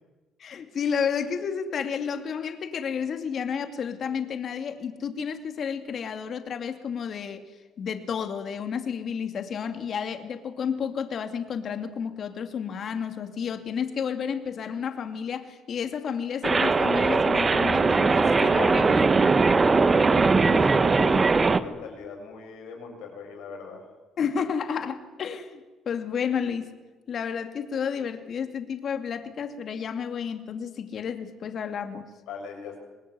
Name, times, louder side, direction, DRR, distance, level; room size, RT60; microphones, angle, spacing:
voice 1, 0.4-7.4 7.8-19.1 24.2-26.7 27.1-32.1, left 7 dB, 55° left, 8 dB, 2.5 m, -31 dB
sound 1, 16.4-21.6, right 4 dB, 35° right, 1.6 m, -20 dB
voice 2, 19.4-23.9 32.3-32.8, left 5 dB, 80° left, 2 dB, 7.9 m, -41 dB
25.0 x 20.5 x 9.6 m, 1.2 s
supercardioid pair, 65°, 0 cm